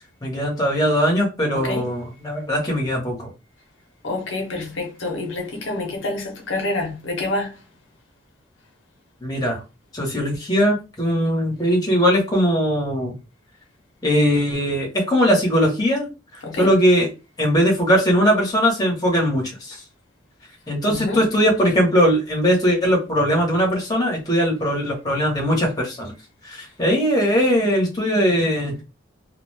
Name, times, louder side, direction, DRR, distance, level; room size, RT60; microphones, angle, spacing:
voice 1, 0.2-3.3 9.2-9.6 9.9-13.2 14.0-17.1 17.4-19.8 20.7-26.1 26.4-28.8, equal, 20° left, 1.0 m, -20 dB
voice 2, 1.5-1.9 4.0-7.6 16.4-16.7 20.9-21.2, left 2 dB, 85° left, 0.7 m, -27 dB
2.3 x 2.2 x 3.2 m
head